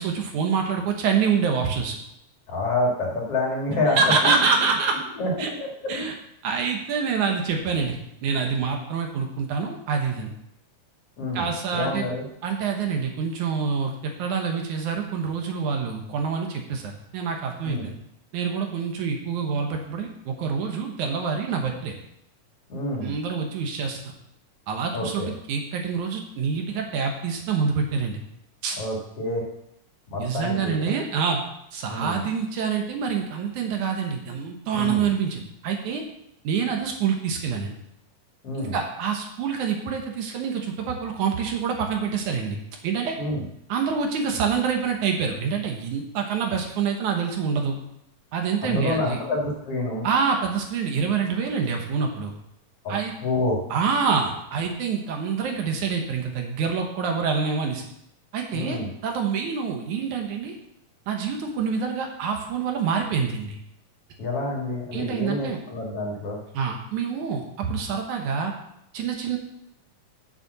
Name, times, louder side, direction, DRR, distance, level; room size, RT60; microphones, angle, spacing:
voice 1, 0.0-2.0 4.0-5.0 5.4-5.5 5.9-6.1 6.4-10.3 11.3-12.1 12.4-18.0 18.3-22.0 23.0-24.1 24.7-28.2 28.6-28.8 30.2-31.4 31.7-36.0 36.4-37.7 38.6-42.6 42.8-43.2 43.7-47.8 48.3-49.2 50.0-52.3 52.9-53.1 53.7-57.9 58.3-60.6 61.1-63.6 64.9-65.6 66.5-68.5 68.9-69.4, right 6 dB, 70° right, 3 dB, 2.4 m, -26 dB
voice 2, 2.5-4.7 5.2-6.1 11.2-11.4 11.7-12.2 17.6-17.9 22.7-23.1 24.9-25.3 28.7-29.5 30.1-30.9 31.9-32.2 34.7-35.0 38.4-38.7 43.2-43.4 48.6-50.1 52.8-53.6 58.5-58.9 64.2-66.4, left 2 dB, 50° left, -2 dB, 2.8 m, -28 dB
7.5 x 7.3 x 6.8 m, 0.79 s
omnidirectional pair, 3.8 m